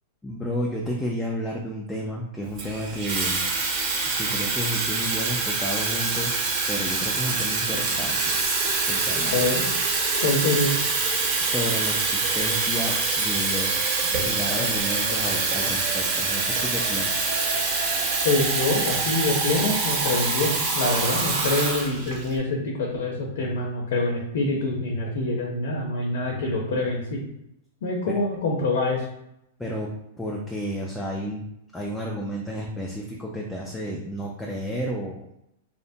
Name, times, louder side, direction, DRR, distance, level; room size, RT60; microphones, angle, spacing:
voice 1, 0.2-3.5 4.2-6.3 6.7-8.4 8.9-9.5 11.4-17.4 28.1-28.2 29.6-31.4 31.7-35.3, equal, 5° left, -2 dB, 0.3 m, -32 dB
Water tap faucet / Fill (with liquid), 2.6-22.3, right 3 dB, 40° right, 0.7 m, -25 dB
voice 2, 9.3-9.6 10.2-10.8 14.6-14.7 18.2-27.2 27.8-29.0, left 2 dB, 70° left, -1 dB, 0.6 m, -25 dB
2.8 x 2.2 x 2.6 m, 0.81 s
hypercardioid pair, 145°, 0 cm